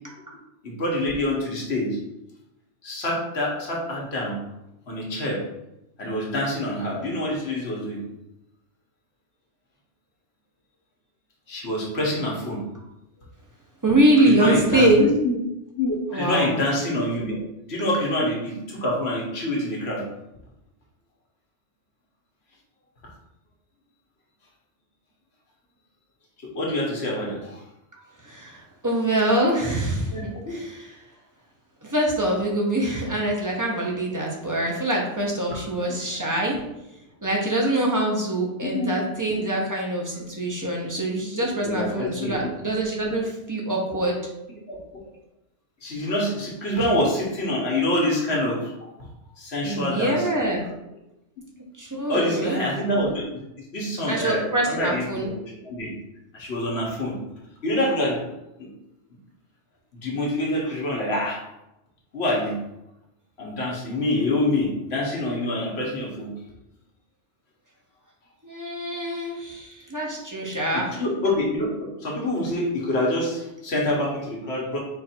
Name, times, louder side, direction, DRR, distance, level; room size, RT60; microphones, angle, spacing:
voice 1, 0.6-2.0 2.8-4.4 4.9-5.4 6.0-8.0 11.5-12.6 14.2-15.3 15.8-17.4 17.7-20.0 26.5-27.6 30.1-30.5 35.9-36.0 38.6-39.0 41.6-42.5 44.7-44.8 45.8-48.9 49.4-50.2 52.1-53.2 53.7-55.3 55.6-55.9 56.3-57.1 57.6-58.2 60.0-61.4 62.1-62.6 63.4-66.3 70.7-71.7 72.0-74.8, left 1 dB, 60° left, -3 dB, 1.4 m, -26 dB
voice 2, 13.8-15.0 16.1-16.6 28.2-31.0 31.8-36.6 37.2-44.2 49.6-50.6 51.8-52.6 54.1-55.3 68.4-71.0, right 1 dB, 20° right, -2 dB, 0.7 m, -24 dB
4.4 x 2.6 x 4.3 m, 0.90 s
omnidirectional pair, 1.2 m